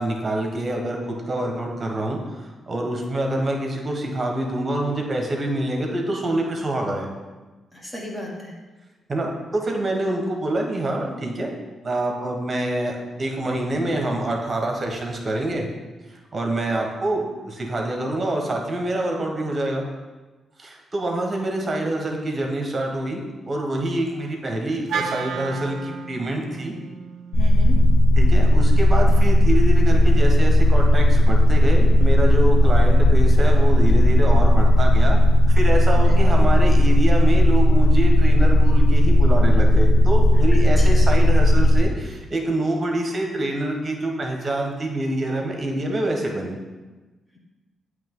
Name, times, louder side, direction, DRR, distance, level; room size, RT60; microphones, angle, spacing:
voice 1, 0.0-7.1 9.1-11.5 11.8-15.7 16.1-19.8 20.6-23.2 23.5-26.7 28.2-35.2 35.5-46.6, right 1 dB, 35° right, 1 dB, 1.3 m, -26 dB
voice 2, 7.7-8.5 27.4-27.8 36.0-36.4 40.8-41.1, equal, 15° left, -2 dB, 1.6 m, -35 dB
Wind instrument woodwind instrument, 24.9-29.2, right 6 dB, 75° right, 0.4 m, -34 dB
sound 1, 27.3-41.8, left 1 dB, 85° left, 0.4 m, -15 dB
8.3 x 3.2 x 3.8 m, 1.2 s
supercardioid pair, 60°, 0 cm